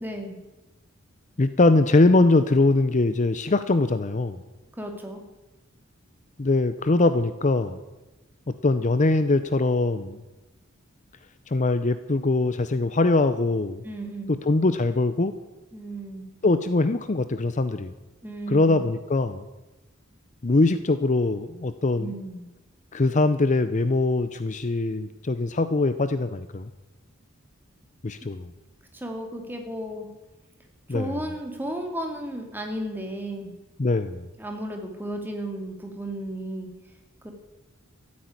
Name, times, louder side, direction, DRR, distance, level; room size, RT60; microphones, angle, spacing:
voice 1, 0.0-0.4 4.8-5.2 13.8-14.4 15.7-16.3 18.2-18.8 22.0-22.5 28.9-30.1 30.9-33.5 34.4-36.7 37.2-37.3, right 1 dB, 10° right, 3 dB, 2.4 m, -34 dB
voice 2, 1.4-4.4 6.4-7.8 8.5-10.2 11.5-13.8 14.3-15.3 16.4-17.9 18.5-19.4 20.4-22.1 22.9-26.7 28.0-28.5 30.9-31.2 33.8-34.3, left 2 dB, 35° left, 11 dB, 0.6 m, -22 dB
14.0 x 8.6 x 9.4 m, 1.1 s
head